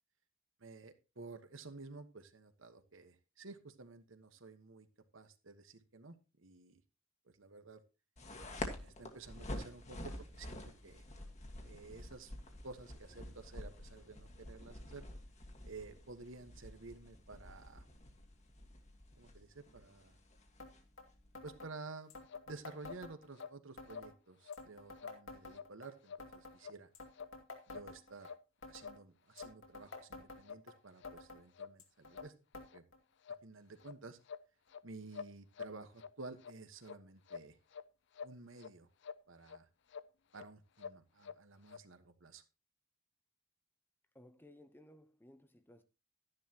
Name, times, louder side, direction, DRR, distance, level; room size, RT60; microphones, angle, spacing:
voice 1, 0.6-4.9 5.1-6.8 7.2-7.8 8.8-11.0 11.6-12.3 12.6-15.0 15.6-17.9 19.1-20.2 21.4-22.1 22.5-26.9 27.7-28.3 28.7-32.3 32.7-32.8 33.4-34.2 34.8-37.6 38.2-38.9 39.3-39.7 40.3-42.4, right 3 dB, 70° right, 1.3 m, -52 dB
sound 1, 8.2-21.6, left 1 dB, 35° left, 1.7 m, -49 dB
sound 2, 20.6-20.7 21.0-21.1 21.3-21.7 22.1-23.5 23.8-24.1 24.5-25.9 26.2-26.6 26.9-28.3 28.6-29.0 29.4-30.7 31.0-31.4 31.8-32.3 32.5-32.7 32.9-33.0 33.8-33.9 34.7-34.8, left 2 dB, 80° left, 2.6 m, -51 dB
sound 3, 22.3-22.4 22.8-23.0 23.4-23.6 23.9-24.1 24.4-24.6 25.0-25.2 25.5-25.7 26.1-26.3 26.6-26.8 27.1-27.3 27.7-27.9 28.2-28.4 28.8-29.0 29.4-29.5 29.9-30.0 30.4-30.6 31.0-31.1 31.5-31.8 32.1-32.3 32.7-32.8 33.2-33.4 33.8-34.0 34.3-34.8 35.1-36.1 36.4-36.5 36.8-37.0 37.3-37.9 38.1-38.7 39.0-39.2 39.5-39.6 39.9-40.1 40.3-40.5 40.8-41.4 41.6-41.8, left 6 dB, 60° left, 0.6 m, -48 dB
voice 2, 44.1-45.8, left 1 dB, 10° left, 0.8 m, -59 dB
12.5 x 10.5 x 2.9 m
head